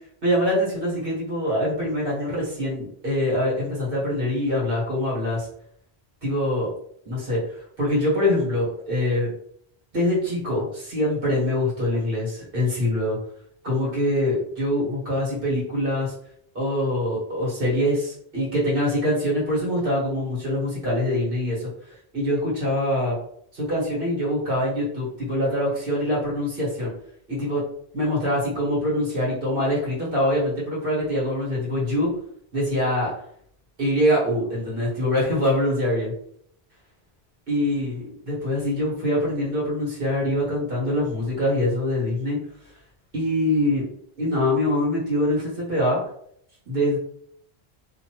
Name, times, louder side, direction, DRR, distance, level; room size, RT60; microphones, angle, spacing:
voice 1, 0.2-5.5 6.2-6.7 7.1-7.4 7.8-9.3 9.9-13.2 13.6-16.1 16.5-23.2 23.5-26.9 27.3-27.6 27.9-32.1 32.5-33.1 33.8-36.1 37.5-42.4 43.1-43.9 44.2-46.0 46.7-47.0, left 1 dB, 60° right, -6 dB, 1.8 m, -24 dB
2.8 x 2.7 x 2.9 m, 0.67 s
omnidirectional pair, 1.1 m